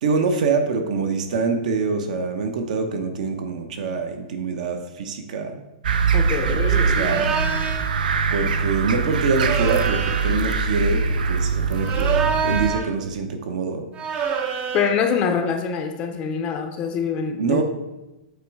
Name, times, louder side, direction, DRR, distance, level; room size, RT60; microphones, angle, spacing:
voice 1, 0.0-5.6 6.5-7.4 8.3-13.9 17.4-17.6, right 4 dB, 60° right, 6 dB, 0.9 m, -25 dB
sound 1, 5.8-12.7, right 5 dB, 80° right, 0.6 m, -22 dB
voice 2, 6.1-7.3 14.7-17.6, left 6 dB, 25° left, 5 dB, 0.5 m, -25 dB
sound 2, 7.0-7.9 9.3-10.4 11.7-13.0 14.0-15.0, right 6 dB, 25° right, 0.5 m, -26 dB
8.0 x 3.1 x 4.7 m, 1.0 s
hypercardioid pair, 165°, 5 cm